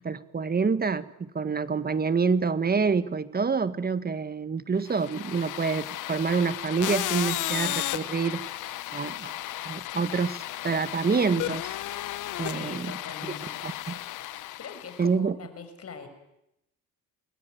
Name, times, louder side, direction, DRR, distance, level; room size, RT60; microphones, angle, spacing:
voice 1, 0.0-8.4 8.9-9.3 9.6-11.7 12.4-12.9 13.6-14.0 15.0-15.4, right 5 dB, 30° right, 13 dB, 1.7 m, -27 dB
sound 1, 4.9-15.1, left 15 dB, 80° left, 1.0 m, -34 dB
voice 2, 12.4-13.6 14.3-16.1, left 5 dB, 50° left, 8 dB, 6.5 m, -43 dB
28.0 x 21.0 x 9.5 m, 0.86 s
cardioid pair, 90°, 30 cm